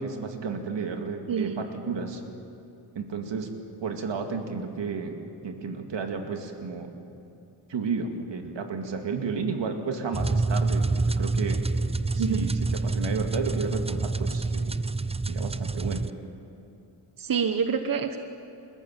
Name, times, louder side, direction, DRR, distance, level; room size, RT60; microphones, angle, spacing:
voice 1, 0.0-2.2 2.9-3.5 3.8-5.2 5.4-6.9 7.7-11.6 12.1-12.5 12.8-14.8 15.3-16.0, right 5 dB, 85° right, 4 dB, 2.3 m, -32 dB
voice 2, 1.3-1.7 12.2-12.4 17.2-18.2, right 6 dB, 50° right, 7 dB, 1.2 m, -27 dB
sound 1, 10.1-16.1, right 3 dB, 15° right, 0.5 m, -27 dB
30.0 x 14.0 x 7.6 m, 2.8 s
cardioid pair, 85°, 43 cm